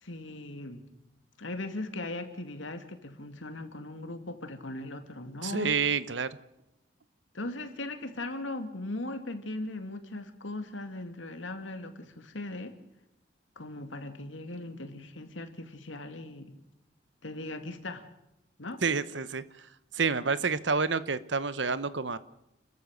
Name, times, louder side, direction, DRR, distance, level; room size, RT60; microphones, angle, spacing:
voice 1, 0.0-0.8 1.4-5.7 7.3-12.8 13.6-16.6 17.2-18.0 18.6-18.8, left 2 dB, 90° left, 7 dB, 2.4 m, -39 dB
voice 2, 5.4-6.3 18.8-19.7 19.9-22.2, right 5 dB, 75° right, 15 dB, 1.0 m, -29 dB
29.5 x 14.0 x 6.5 m, 0.88 s
head